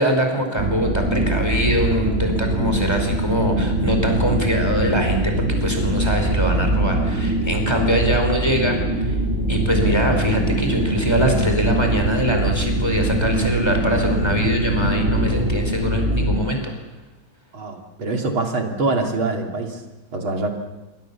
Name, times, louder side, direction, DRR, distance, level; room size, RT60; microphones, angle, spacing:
voice 1, 0.0-8.8 9.5-16.7, equal, 10° left, 3 dB, 4.9 m, -23 dB
sound 1, 0.6-16.4, right 1 dB, 35° right, 4.3 m, -22 dB
voice 2, 17.5-19.8 20.1-20.5, right 3 dB, 85° right, 3 dB, 3.7 m, -24 dB
27.5 x 23.0 x 7.3 m, 1.1 s
omnidirectional pair, 2.2 m